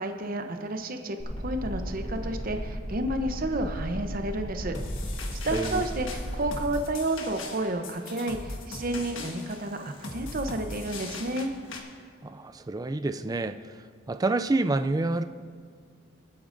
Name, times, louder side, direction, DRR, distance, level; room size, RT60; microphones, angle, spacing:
voice 1, 0.0-4.8 5.3-11.5, right 1 dB, 45° right, 6 dB, 0.8 m, -31 dB
sound 1, 1.2-6.6, equal, 45° left, 2.6 m, -36 dB
sound 2, 4.7-11.8, left 2 dB, 70° left, 1.4 m, -40 dB
voice 2, 5.5-5.8 12.2-13.6 14.1-15.2, right 2 dB, 20° right, 10 dB, 0.3 m, -28 dB
24.0 x 8.5 x 2.6 m, 2.1 s
head